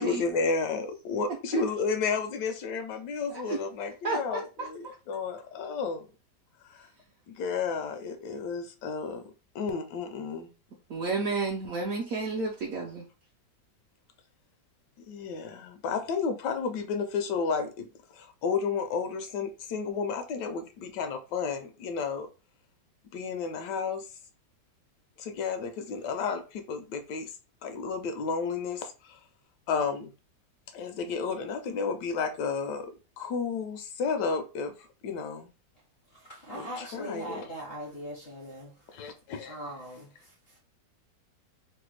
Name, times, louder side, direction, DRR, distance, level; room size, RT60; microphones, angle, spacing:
voice 1, 0.0-6.1 6.6-6.9 7.3-9.2 9.5-10.5 15.1-22.3 23.1-24.1 25.2-27.3 27.6-29.2 29.7-30.1 30.7-32.9 33.2-34.7 35.0-35.5 36.5-37.5 38.9-39.6, left 5 dB, 75° left, 1.1 m, -32 dB
voice 2, 4.0-4.9 10.9-13.1, right 3 dB, 75° right, 0.8 m, -32 dB
voice 3, 36.1-38.9 39.5-40.6, equal, 55° left, 0.6 m, -41 dB
3.2 x 2.1 x 3.1 m
omnidirectional pair, 2.0 m